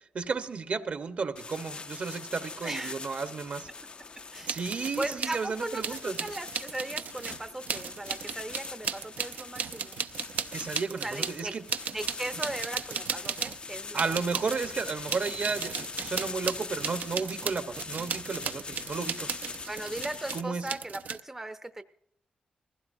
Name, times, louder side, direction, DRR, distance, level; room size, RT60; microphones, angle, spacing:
voice 1, 0.1-3.7 4.5-6.2 10.5-11.6 13.9-19.3 20.3-20.7, right 4 dB, 55° right, 9 dB, 1.1 m, -33 dB
sound 1, 1.4-20.4, left 4 dB, 40° left, 0.5 m, -42 dB
voice 2, 2.6-3.2 4.3-10.0 11.0-11.5 11.9-14.2 19.7-21.8, right 2 dB, 15° right, 8 dB, 0.6 m, -38 dB
sound 2, 4.5-5.4 5.8-13.6 13.9-21.2, right 7 dB, 75° right, 0.6 m, -36 dB
21.0 x 16.0 x 2.6 m, 0.71 s
wide cardioid pair, 110°, 3 cm